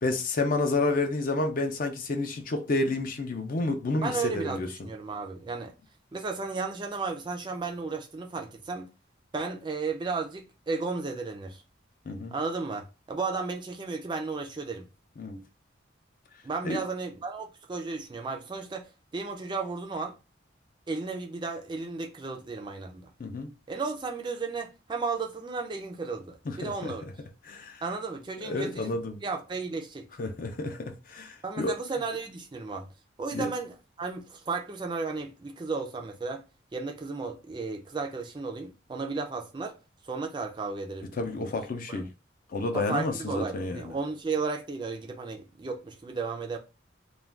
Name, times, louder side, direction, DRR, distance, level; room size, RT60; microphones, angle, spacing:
voice 1, 0.0-4.9 12.1-12.3 15.2-15.4 16.6-16.8 23.2-23.5 26.5-27.1 27.4-27.8 28.4-29.2 30.2-31.8 33.3-33.5 41.2-42.1 42.5-43.9, left 2 dB, 45° left, 0.4 m, -30 dB
voice 2, 4.0-5.7 6.1-8.9 9.3-11.6 12.3-14.9 16.4-18.9 19.1-20.2 20.9-23.1 23.7-27.1 27.8-30.1 31.4-32.9 33.2-36.4 36.7-39.8 40.1-41.5 41.9-42.1 42.7-46.6, right 4 dB, 25° right, 0.3 m, -34 dB
2.4 x 2.2 x 3.3 m
head